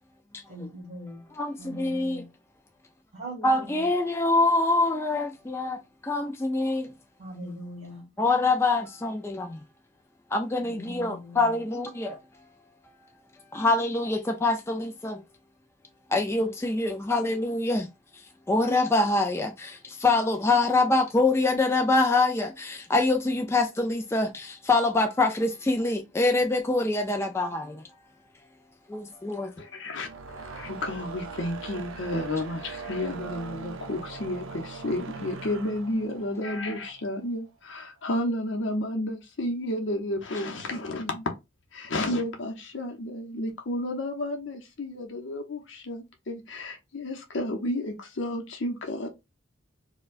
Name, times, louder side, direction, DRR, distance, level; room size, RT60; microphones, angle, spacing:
voice 1, 0.5-1.2 1.6-2.3 3.2-3.9 7.2-8.1 10.6-11.6, right 1 dB, 30° right, 2.1 m, -41 dB
voice 2, 1.4-2.2 3.4-6.9 8.2-9.6 10.3-12.2 13.5-15.2 16.1-17.9 18.5-27.8 28.9-29.5, left 2 dB, 10° left, 0.3 m, -25 dB
voice 3, 29.6-41.3 41.7-49.1, left 1 dB, 60° left, 0.7 m, -32 dB
sound 1, 29.9-37.3, right 4 dB, 70° right, 0.6 m, -41 dB
4.4 x 2.2 x 2.4 m
head